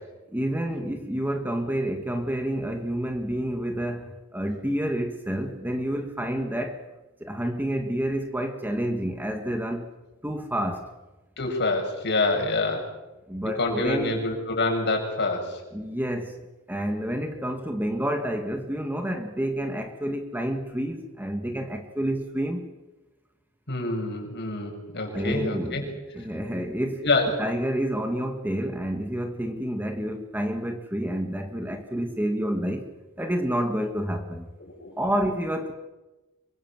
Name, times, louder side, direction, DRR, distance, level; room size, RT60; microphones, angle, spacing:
voice 1, 0.3-6.8 7.2-9.9 10.2-10.8 13.3-14.2 15.7-16.4 16.7-22.7 25.1-27.1 27.4-32.9 33.2-34.5 35.0-35.7, equal, 10° right, 5 dB, 2.1 m, -29 dB
voice 2, 11.4-12.9 13.6-15.6 23.7-25.8 27.0-27.3 34.7-35.0, left 2 dB, 55° left, 2 dB, 7.3 m, -26 dB
27.0 x 24.5 x 7.6 m, 1.1 s
head